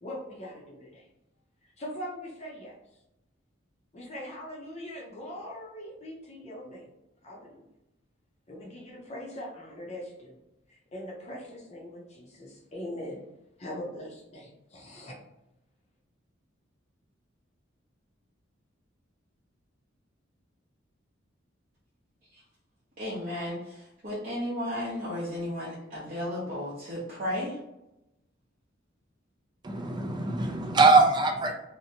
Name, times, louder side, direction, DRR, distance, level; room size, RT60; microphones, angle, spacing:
voice 1, 0.0-1.1 1.8-2.7 3.9-6.9 7.2-7.7 8.5-10.4 10.7-13.2 13.6-15.2, left 1 dB, 35° left, -2 dB, 0.6 m, -41 dB
voice 2, 23.0-27.6, left 1 dB, 45° right, -9 dB, 0.7 m, -34 dB
voice 3, 29.6-31.5, right 3 dB, 25° right, 4 dB, 0.3 m, -22 dB
2.8 x 2.1 x 2.8 m, 0.89 s
head